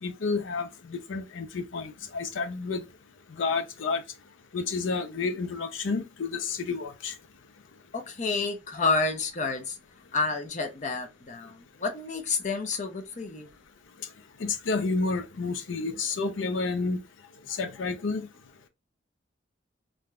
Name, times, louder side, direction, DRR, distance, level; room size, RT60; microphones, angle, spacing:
voice 1, 0.0-2.8 3.4-4.0 4.5-7.1 14.4-17.0 17.5-18.3, left 4 dB, 90° left, 0.5 m, -30 dB
voice 2, 7.9-9.8 10.1-13.5, left 4 dB, 40° left, 0.6 m, -29 dB
3.4 x 2.6 x 2.2 m
head